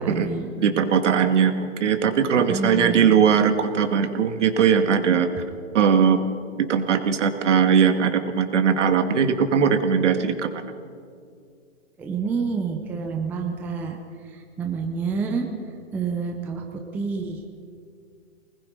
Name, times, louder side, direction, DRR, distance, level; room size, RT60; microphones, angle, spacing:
voice 1, 0.0-0.5 2.4-3.1 12.0-14.0 14.3-15.5 15.9-17.4, right 5 dB, 5° right, 3 dB, 0.6 m, -28 dB
voice 2, 0.6-5.3 5.7-6.2 6.7-10.6, right 7 dB, 60° right, 7 dB, 2.1 m, -20 dB
24.5 x 20.0 x 5.3 m, 2.2 s
hypercardioid pair, 150°, 40 cm